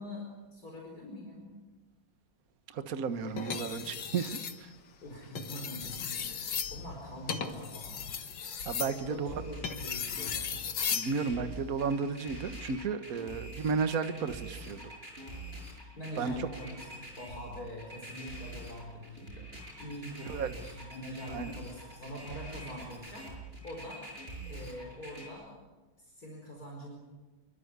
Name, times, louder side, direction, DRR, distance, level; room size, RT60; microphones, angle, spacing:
voice 1, 0.0-1.5 3.2-4.0 5.0-8.1 8.5-9.2 9.5-10.3 16.0-16.7 17.1-19.5 19.8-23.3 23.6-24.1 24.5-25.6 26.0-27.0, equal, 45° left, -1 dB, 5.1 m, -44 dB
voice 2, 2.7-4.7 8.7-9.4 10.9-14.9 16.2-16.5 20.2-20.5 21.3-21.5, right 5 dB, 45° right, 9 dB, 1.6 m, -33 dB
sound 1, 3.4-4.6 5.2-11.1 12.6-12.9, left 7 dB, 60° left, 2.1 m, -36 dB
sound 2, 9.3-25.3, right 1 dB, 25° right, 7.2 m, -45 dB
26.0 x 24.5 x 8.3 m, 1.2 s
omnidirectional pair, 2.3 m